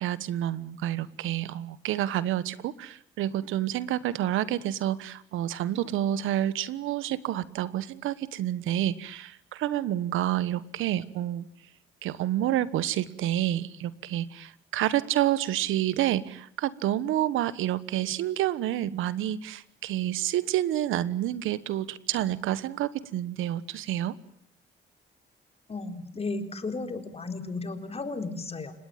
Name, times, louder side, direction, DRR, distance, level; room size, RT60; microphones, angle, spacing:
voice 1, 0.0-11.5 12.0-24.1, right 12 dB, 85° right, 17 dB, 1.3 m, -29 dB
voice 2, 25.7-28.7, left 3 dB, 30° left, 7 dB, 3.9 m, -34 dB
30.0 x 17.5 x 9.2 m, 0.65 s
cardioid pair, 90°, 20 cm